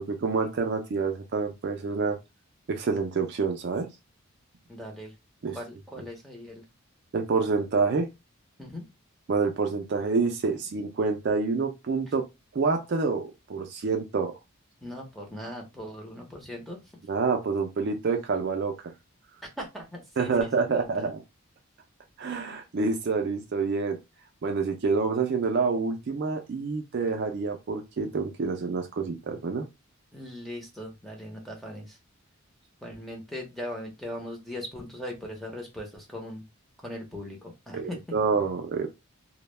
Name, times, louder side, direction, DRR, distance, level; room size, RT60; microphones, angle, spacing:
voice 1, 0.0-2.2 2.7-3.9 5.4-5.6 7.1-8.1 9.3-12.3 12.5-14.3 17.1-18.9 20.2-21.2 22.2-24.0 24.4-29.7 37.7-39.0, right 4 dB, 50° right, 0.3 m, -27 dB
voice 2, 4.7-5.1 5.5-6.6 8.6-8.8 12.1-12.2 14.8-16.8 19.4-21.1 30.1-32.0 32.8-36.4 36.8-38.0, left 1 dB, ahead, 0.6 m, -39 dB
2.2 x 2.0 x 3.1 m
head